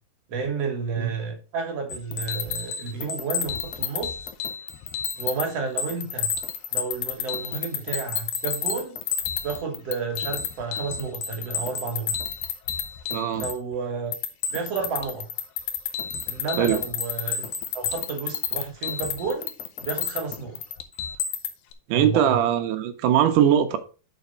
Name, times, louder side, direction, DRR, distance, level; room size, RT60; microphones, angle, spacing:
voice 1, 0.3-4.2 5.2-6.3 6.7-9.0 9.4-12.1 13.3-14.1 14.5-15.3 16.3-17.5 17.7-19.5 19.8-20.6 21.9-22.4, right 5 dB, 55° right, 2.1 m, -31 dB
sound 1, 1.9-5.4 5.8-13.7 14.1-21.7, left 8 dB, 75° left, 1.8 m, -30 dB
voice 2, 13.1-13.5 16.6-16.8 21.9-23.8, right 10 dB, 75° right, 2.1 m, -21 dB
6.8 x 4.6 x 5.4 m
omnidirectional pair, 4.3 m